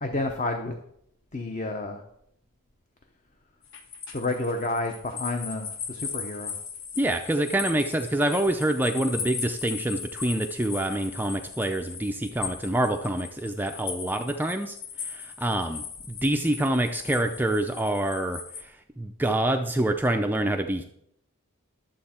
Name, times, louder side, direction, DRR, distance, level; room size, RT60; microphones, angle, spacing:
voice 1, 0.0-0.7 1.3-2.0 4.1-6.6, left 2 dB, 35° left, 5 dB, 0.7 m, -30 dB
sound 1, 3.6-18.6, left 6 dB, 55° left, 1.3 m, -38 dB
voice 2, 7.0-20.8, right 1 dB, 10° right, 5 dB, 0.4 m, -26 dB
11.5 x 7.5 x 4.3 m, 0.74 s
head